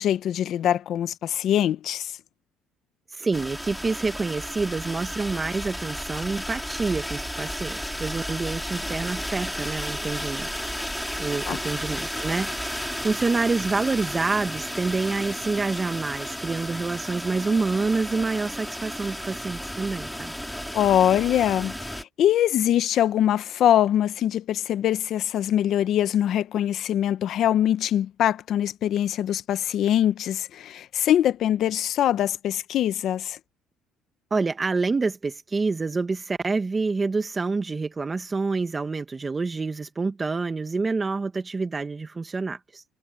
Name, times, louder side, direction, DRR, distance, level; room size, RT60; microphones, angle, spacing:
voice 1, 0.0-2.1 11.5-11.6 20.7-33.4, left 11 dB, 60° left, 1.0 m, -23 dB
voice 2, 3.1-10.5 10.8-20.3 34.3-42.8, right 4 dB, 25° right, 1.4 m, -27 dB
sound 1, 3.3-22.0, equal, ahead, 3.9 m, -33 dB
cardioid pair, 105°, 0 cm